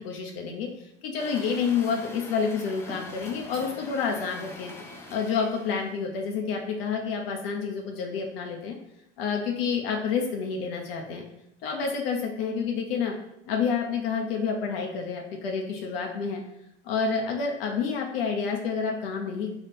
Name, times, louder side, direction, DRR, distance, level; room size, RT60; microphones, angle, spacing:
voice 1, 0.0-4.7 5.1-8.8 9.2-11.2 11.6-13.1 13.5-16.4 16.8-19.5, left 5 dB, 60° left, 1 dB, 0.7 m, -29 dB
Truck, 1.2-6.0, left 2 dB, 10° left, 0.5 m, -43 dB
3.4 x 2.4 x 4.4 m, 0.81 s
figure-of-eight pair, 75°, 34 cm